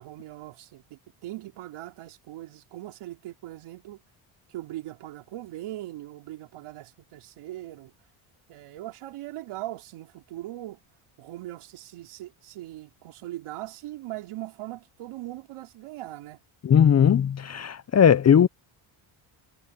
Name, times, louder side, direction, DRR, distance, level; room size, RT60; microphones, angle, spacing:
voice 1, 0.0-4.0 4.5-7.9 8.5-10.8 11.2-16.4, right 15 dB, 80° right, 3.9 m, -40 dB
voice 2, 16.6-18.5, left 8 dB, 30° left, 0.7 m, -18 dB
cardioid pair, 95°, 50 cm